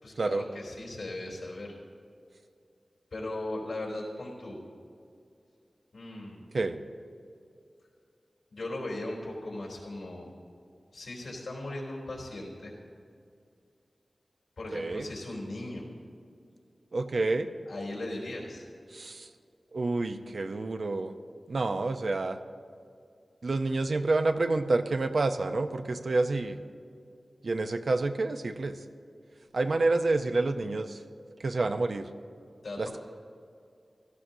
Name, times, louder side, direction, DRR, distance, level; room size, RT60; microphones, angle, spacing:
voice 1, 0.0-1.7 3.1-4.6 5.9-6.4 8.5-10.3 10.9-12.7 14.6-15.9 17.7-18.7 32.6-33.0, left 1 dB, 85° left, -3 dB, 3.4 m, -38 dB
voice 2, 14.7-15.1 16.9-17.5 18.9-19.3 19.7-21.1 21.5-22.4 23.4-26.6 27.4-28.7 29.5-31.0 31.4-32.1 32.8-33.0, right 3 dB, 65° right, 7 dB, 0.6 m, -28 dB
16.0 x 14.0 x 2.7 m, 2.4 s
wide cardioid pair, 100°, 0 cm